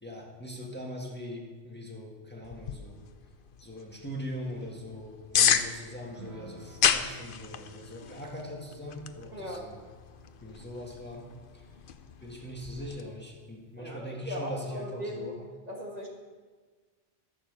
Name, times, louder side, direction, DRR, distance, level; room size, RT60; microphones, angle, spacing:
voice 1, 0.0-3.0 3.6-9.8 10.4-11.3 11.5-11.6 12.2-15.3, left 1 dB, 10° left, -2 dB, 1.7 m, -41 dB
sound 1, 2.4-13.0, left 8 dB, 55° left, 0.7 m, -33 dB
sound 2, 6.0-12.8 13.1-13.2 13.6-13.7, right 3 dB, 80° right, 2.5 m, -54 dB
voice 2, 9.3-9.7 13.8-15.3 15.7-16.1, equal, 35° right, -2 dB, 1.7 m, -38 dB
13.0 x 7.1 x 6.6 m, 1.4 s
omnidirectional pair, 1.2 m